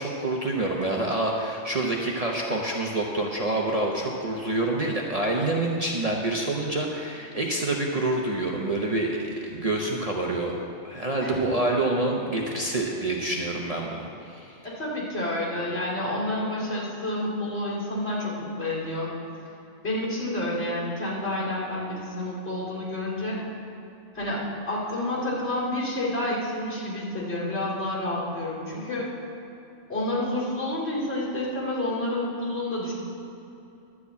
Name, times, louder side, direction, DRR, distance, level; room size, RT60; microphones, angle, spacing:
voice 1, 0.0-10.6 10.8-14.6, right 2 dB, 35° right, -1 dB, 0.8 m, -27 dB
voice 2, 14.6-19.1 19.8-23.4 24.1-29.1 29.9-32.9, left 1 dB, 60° left, -6 dB, 3.1 m, -29 dB
12.0 x 4.9 x 8.3 m, 2.8 s
omnidirectional pair, 1.3 m